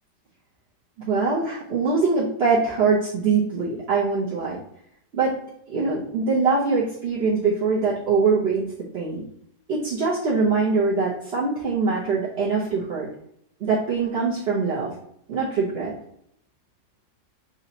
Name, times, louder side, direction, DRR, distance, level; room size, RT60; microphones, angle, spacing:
voice 1, 1.0-4.6 5.1-5.4 5.7-8.6 8.9-9.2 9.7-13.1 13.6-14.9 15.3-15.9, right 4 dB, 50° right, -7 dB, 0.8 m, -23 dB
5.1 x 2.8 x 2.8 m, 0.72 s
omnidirectional pair, 2.0 m